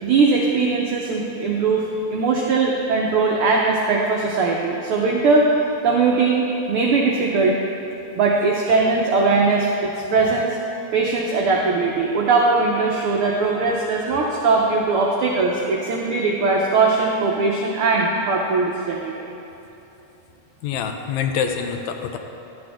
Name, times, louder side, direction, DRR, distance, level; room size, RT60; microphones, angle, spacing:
voice 1, 0.0-5.4 5.8-7.6 8.1-10.6 10.9-19.4, right 4 dB, 85° right, -2 dB, 1.2 m, -20 dB
voice 2, 20.6-22.2, left 7 dB, 80° left, 5 dB, 1.8 m, -25 dB
12.0 x 8.0 x 3.4 m, 3.0 s
omnidirectional pair, 3.3 m